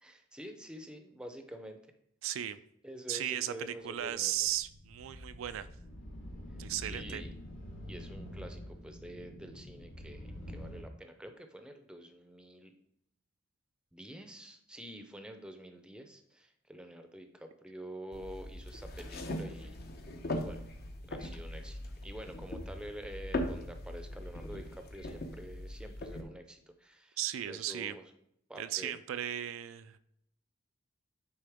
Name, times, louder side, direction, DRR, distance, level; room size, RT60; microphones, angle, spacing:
voice 1, 0.0-1.9 2.8-4.4 6.8-7.3 7.9-12.7 13.9-19.8 20.3-20.6 21.1-27.2 27.4-28.0 28.5-29.0, right 1 dB, 5° right, 6 dB, 0.5 m, -47 dB
voice 2, 2.2-2.6 3.1-3.5 3.8-5.7 6.6-7.2 27.2-28.0 28.6-30.0, right 12 dB, 85° right, 12 dB, 0.3 m, -36 dB
sound 1, 4.0-10.8, equal, 80° left, 1.3 m, -46 dB
sound 2, 18.1-26.2, left 1 dB, 55° left, 0.8 m, -40 dB
9.1 x 3.8 x 3.5 m, 0.74 s
head